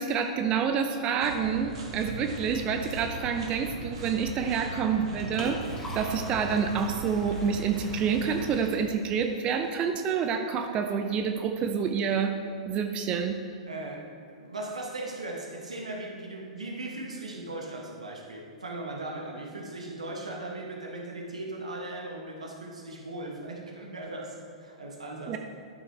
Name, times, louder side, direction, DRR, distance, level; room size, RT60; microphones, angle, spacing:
voice 1, 0.0-12.4 12.7-13.4 25.3-25.4, right 6 dB, 30° right, 6 dB, 0.5 m, -28 dB
sound 1, 1.2-8.5, right 2 dB, 60° right, 1.3 m, -39 dB
Liquid, 4.8-9.8, left 1 dB, 15° left, 1.8 m, -44 dB
voice 2, 13.7-25.4, right 2 dB, 80° right, 1 dB, 1.3 m, -38 dB
12.0 x 5.7 x 3.2 m, 2.2 s
figure-of-eight pair, 105°, 3 cm